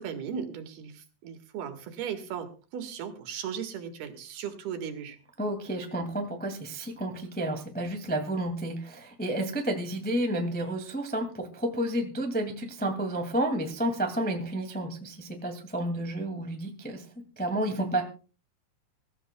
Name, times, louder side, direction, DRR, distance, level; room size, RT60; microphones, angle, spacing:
voice 1, 0.0-5.2, right 7 dB, 75° right, 5 dB, 3.6 m, -37 dB
voice 2, 5.4-17.0 17.4-18.0, right 1 dB, 10° left, 3 dB, 0.4 m, -31 dB
24.5 x 14.0 x 2.3 m, 0.34 s
omnidirectional pair, 4.6 m